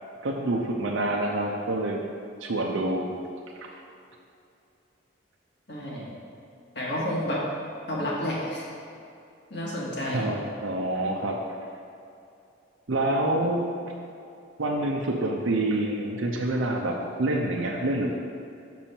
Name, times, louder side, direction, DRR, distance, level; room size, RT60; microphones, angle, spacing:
voice 1, 0.2-2.0 2.4-3.1 3.6-3.7 10.1-11.6 12.9-13.7 14.6-18.1, right 1 dB, 80° right, -1 dB, 0.6 m, -27 dB
voice 2, 5.7-6.0 6.8-7.4 7.9-8.6 9.5-10.3, left 1 dB, 55° left, -6 dB, 1.9 m, -30 dB
7.0 x 6.2 x 4.4 m, 2.6 s
head